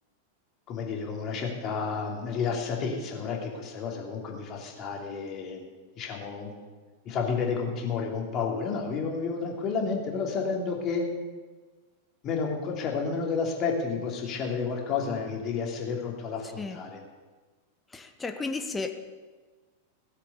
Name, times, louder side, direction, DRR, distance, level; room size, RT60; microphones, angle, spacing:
voice 1, 0.7-5.7 6.0-6.5 7.0-11.1 12.2-17.0, left 5 dB, 35° left, 1 dB, 2.9 m, -31 dB
voice 2, 16.4-16.8 17.9-18.9, left 3 dB, 15° left, 7 dB, 1.2 m, -34 dB
17.0 x 8.3 x 7.0 m, 1.3 s
figure-of-eight pair, 90°, 0 cm